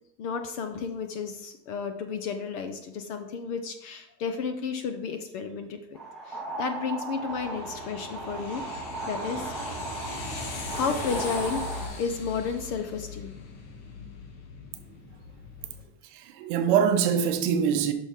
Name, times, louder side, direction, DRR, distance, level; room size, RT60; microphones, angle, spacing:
voice 1, 0.2-5.8 6.3-9.5 10.7-13.3, left 5 dB, 30° left, 0.5 m, -32 dB
sound 1, 5.9-11.9, right 2 dB, ahead, 1.1 m, -36 dB
sound 2, 7.3-15.8, left 3 dB, 50° left, 2.0 m, -39 dB
voice 2, 16.0-17.9, right 7 dB, 45° right, 0.8 m, -24 dB
9.7 x 6.2 x 3.6 m
supercardioid pair, 180°, 37 cm